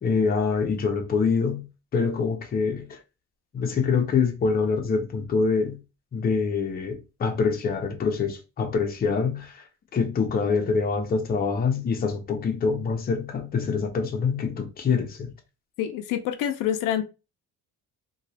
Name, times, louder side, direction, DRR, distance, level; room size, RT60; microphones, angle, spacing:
voice 1, 0.0-1.7 1.9-3.0 3.5-5.8 6.1-9.6 9.9-15.3, left 5 dB, 30° left, 0.6 m, -25 dB
voice 2, 15.8-17.0, left 10 dB, 80° left, 0.5 m, -26 dB
3.0 x 2.3 x 2.7 m
cardioid pair, 150°, 32 cm